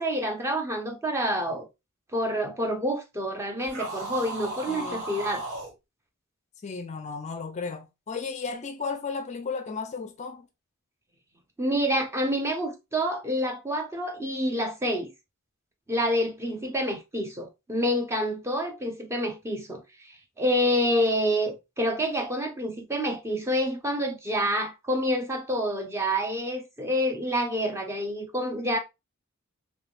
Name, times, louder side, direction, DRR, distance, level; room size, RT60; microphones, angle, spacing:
voice 1, 0.0-1.7 2.1-5.4 11.6-15.1 15.9-19.8 20.4-28.8, equal, 15° right, 0.6 m, -27 dB
sound 1, 3.6-5.7, right 2 dB, 70° right, 2.1 m, -35 dB
voice 2, 4.7-5.0 6.6-10.5, left 4 dB, 35° left, 0.4 m, -34 dB
3.3 x 2.9 x 2.4 m
head